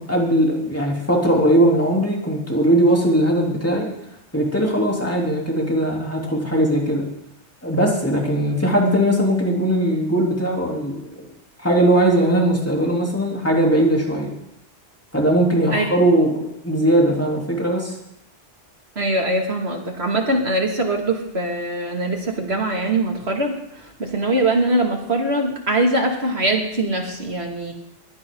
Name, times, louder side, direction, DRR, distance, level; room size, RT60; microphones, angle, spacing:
voice 1, 0.0-3.9 4.3-7.1 7.6-11.1 11.6-14.3 15.1-18.0, right 1 dB, 10° left, -2 dB, 3.5 m, -19 dB
voice 2, 19.0-27.7, right 1 dB, 65° right, 2 dB, 2.8 m, -22 dB
22.0 x 16.0 x 4.0 m, 0.82 s
omnidirectional pair, 1.2 m